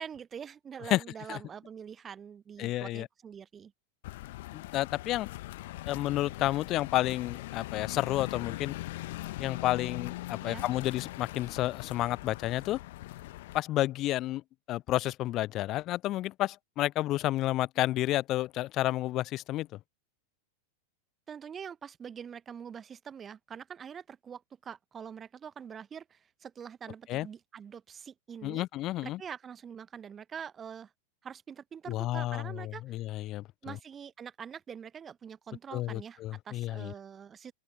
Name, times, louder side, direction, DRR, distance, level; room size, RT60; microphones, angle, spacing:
voice 1, 0.0-3.7 10.4-10.6 21.3-28.7 29.0-30.9 31.2-33.0 33.6-37.5, right 7 dB, 20° right, 0.7 m, -44 dB
voice 2, 2.6-3.1 4.5-5.3 5.9-8.7 9.4-12.8 13.5-14.4 14.7-19.7 27.1-27.3 28.4-29.2 31.9-33.7 35.7-36.9, left 15 dB, 35° left, 0.4 m, -31 dB
sound 1, 4.0-13.6, left 18 dB, 50° left, 1.1 m, -41 dB
open air
figure-of-eight pair, 90°, 0 cm